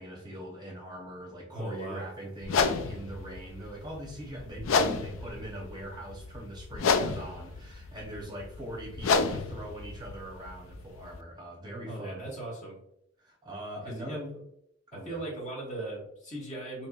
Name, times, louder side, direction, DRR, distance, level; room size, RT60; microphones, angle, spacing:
voice 1, 0.0-12.3 13.2-14.4 14.9-15.2, right 1 dB, 20° right, -1 dB, 0.7 m, -42 dB
voice 2, 1.5-2.0 11.8-12.8 13.8-14.2 14.9-16.9, right 2 dB, 40° left, -3 dB, 1.4 m, -38 dB
sound 1, 2.4-11.2, left 4 dB, 80° left, 0.4 m, -31 dB
4.6 x 2.9 x 2.3 m, 0.77 s
head